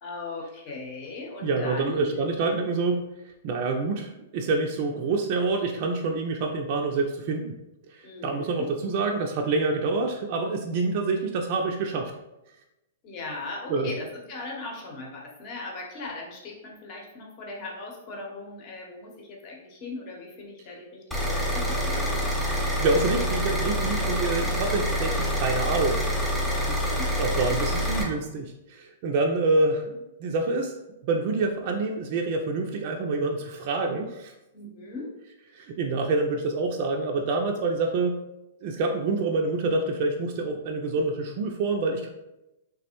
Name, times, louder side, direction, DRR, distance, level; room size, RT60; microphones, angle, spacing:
voice 1, 0.0-2.2 8.0-8.7 13.0-22.2 26.4-27.1 34.5-35.1, left 3 dB, 40° left, -1 dB, 0.8 m, -38 dB
voice 2, 1.4-3.0 3.4-7.5 7.9-12.1 13.7-13.9 22.5-26.3 26.7-30.7 31.0-34.3 35.5-38.2 38.6-42.1, right 3 dB, 50° right, 2 dB, 0.3 m, -27 dB
sound 1, 21.1-28.0, equal, 5° left, 0.8 m, -26 dB
3.3 x 2.0 x 2.9 m, 0.93 s
hypercardioid pair, 130°, 0 cm